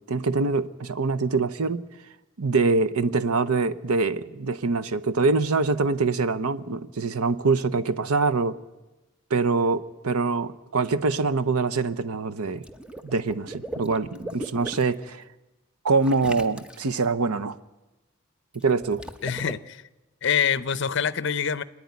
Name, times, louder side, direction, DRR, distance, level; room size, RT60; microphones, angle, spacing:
voice 1, 0.1-1.9 2.4-8.6 9.3-12.6 13.0-15.2 15.8-17.6 18.5-19.0, right 4 dB, 90° right, 0.8 m, -24 dB
Water / Liquid, 12.5-15.0 16.0-17.1 18.5-19.5, right 1 dB, 5° right, 0.8 m, -38 dB
voice 2, 19.2-19.8 20.2-21.6, left 7 dB, 55° left, 0.7 m, -25 dB
27.5 x 10.0 x 9.5 m
head